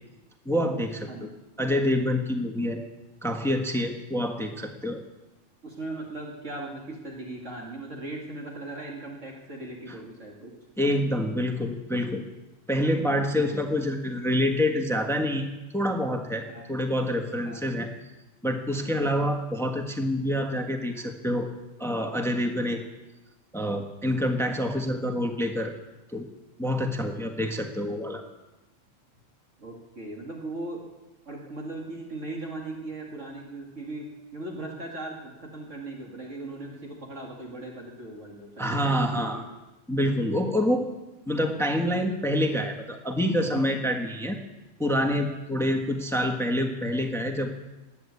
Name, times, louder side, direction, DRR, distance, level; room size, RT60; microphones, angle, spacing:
voice 1, 0.4-1.3 1.6-2.8 3.2-5.0 9.9-10.0 10.8-12.2 12.7-17.9 18.4-21.5 21.8-22.8 23.5-25.7 26.1-26.3 26.6-28.2 38.6-39.4 39.9-40.9 41.3-44.4 44.8-47.5, equal, ahead, 4 dB, 1.3 m, -27 dB
voice 2, 5.6-10.6 13.2-13.6 16.5-16.7 17.4-17.6 29.6-30.8 31.3-39.4, right 2 dB, 70° right, -1 dB, 2.7 m, -38 dB
20.0 x 8.6 x 8.4 m, 1.0 s
omnidirectional pair, 1.3 m